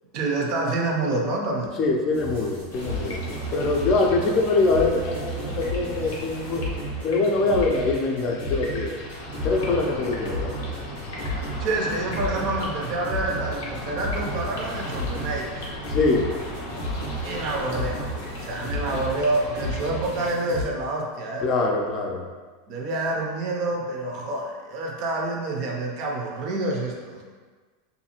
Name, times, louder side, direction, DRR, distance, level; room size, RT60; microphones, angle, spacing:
voice 1, 0.1-1.8 3.3-3.5 11.6-15.5 17.2-21.5 22.7-27.2, right 2 dB, 55° right, 0 dB, 0.6 m, -27 dB
voice 2, 1.8-3.2 3.5-6.7 7.0-9.0 9.4-10.6 15.9-16.3 21.4-22.3, left 3 dB, 40° left, 1 dB, 0.4 m, -23 dB
sound 1, 2.1-20.6, equal, 90° right, 1.3 m, -33 dB
sound 2, 2.7-20.3, left 2 dB, 85° left, 0.6 m, -37 dB
2.6 x 2.3 x 2.8 m, 1.4 s
supercardioid pair, 115°, 0 cm